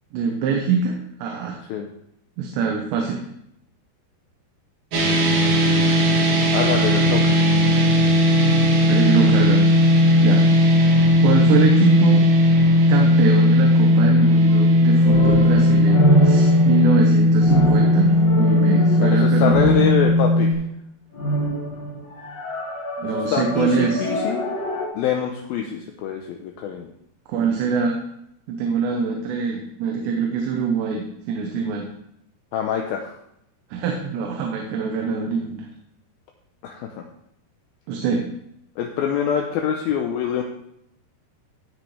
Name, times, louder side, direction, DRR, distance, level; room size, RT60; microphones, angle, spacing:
voice 1, 0.1-1.6 2.4-3.2 8.9-9.6 10.2-10.4 11.2-12.3 12.9-19.9 23.0-24.1 27.3-28.0 28.5-31.9 33.7-35.7 37.9-38.2, right 5 dB, 80° right, 1 dB, 3.2 m, -24 dB
sound 1, 4.9-20.5, left 1 dB, 50° right, 2.1 m, -16 dB
voice 2, 6.5-7.4 19.0-20.5 23.0-24.4 24.9-26.9 32.5-33.2 36.6-36.9 38.8-40.4, left 8 dB, 80° left, 2 dB, 2.3 m, -25 dB
sound 2, 14.5-20.4 21.1-24.9, right 1 dB, 50° left, 2.3 m, -25 dB
17.5 x 6.2 x 3.3 m, 0.76 s
omnidirectional pair, 4.9 m